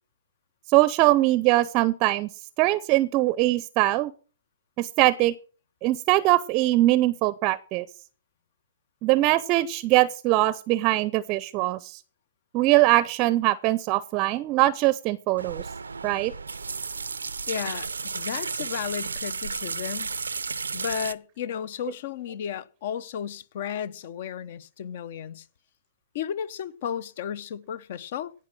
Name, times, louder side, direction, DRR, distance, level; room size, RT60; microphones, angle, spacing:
voice 1, 0.7-2.3 2.6-4.1 4.8-5.3 5.8-7.9 9.0-12.0 12.5-15.6 16.0-16.3, right 17 dB, 35° right, 0.5 m, -22 dB
sound 1, 15.4-21.1, right 4 dB, 85° right, 0.5 m, -33 dB
voice 2, 17.5-20.1 20.7-25.5 26.1-28.3, left 8 dB, 55° left, 0.8 m, -33 dB
17.0 x 5.7 x 6.1 m
hypercardioid pair, 120°, 0 cm